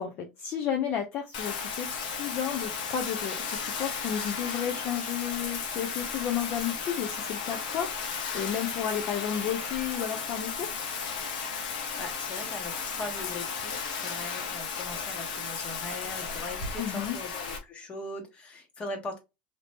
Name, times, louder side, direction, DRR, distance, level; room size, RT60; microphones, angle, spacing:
voice 1, 0.0-10.8 16.8-17.2, left 9 dB, 45° left, 3 dB, 0.6 m, -32 dB
Bathtub (filling or washing), 1.3-17.6, left 5 dB, 90° left, 1.0 m, -34 dB
voice 2, 11.6-19.2, left 2 dB, 30° left, 4 dB, 1.2 m, -40 dB
2.8 x 2.6 x 3.4 m, 0.24 s
supercardioid pair, 130°, 4 cm